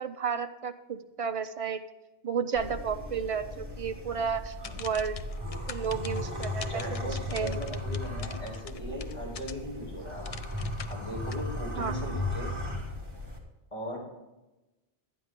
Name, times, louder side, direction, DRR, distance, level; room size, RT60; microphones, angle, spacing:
voice 1, 0.0-1.8 2.2-5.2 5.7-6.8 7.3-7.8 11.8-11.9, right 6 dB, 50° right, 8 dB, 0.4 m, -32 dB
sound 1, 2.5-13.4, left 2 dB, 20° right, 1.9 m, -36 dB
sound 2, 4.5-9.8 10.2-11.4, left 7 dB, 65° left, 0.3 m, -44 dB
voice 2, 6.7-10.2 10.9-12.6 13.7-14.0, equal, 30° left, -4 dB, 4.3 m, -39 dB
12.5 x 9.2 x 3.7 m, 1.0 s
omnidirectional pair, 1.2 m